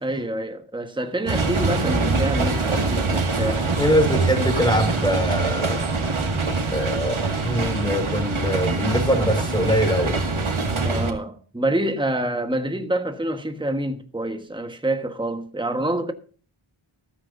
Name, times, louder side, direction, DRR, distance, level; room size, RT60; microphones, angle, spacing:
voice 1, 0.0-3.6 10.8-16.1, right 1 dB, 10° right, 1.3 m, -27 dB
sound 1, 1.3-11.1, right 3 dB, 75° right, 2.1 m, -24 dB
voice 2, 3.8-5.9 6.7-10.2, equal, 10° left, 4.5 m, -23 dB
14.5 x 13.5 x 2.6 m
wide cardioid pair, 65°, 50 cm